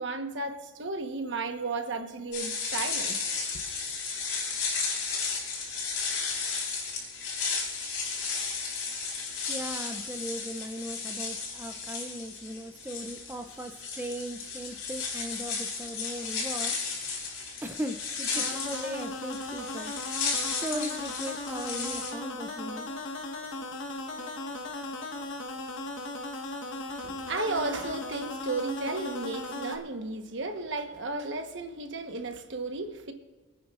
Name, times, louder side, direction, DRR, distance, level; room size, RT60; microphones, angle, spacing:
voice 1, 0.0-3.2 26.9-33.1, right 3 dB, 60° right, 1.2 m, -34 dB
sound 1, 2.3-22.1, left 5 dB, 90° left, 4.5 m, -34 dB
voice 2, 9.5-17.3 17.6-20.0 20.6-22.9, equal, 10° right, 0.5 m, -38 dB
sound 2, 18.3-29.8, left 2 dB, 65° left, 1.3 m, -37 dB
27.0 x 9.5 x 2.5 m
head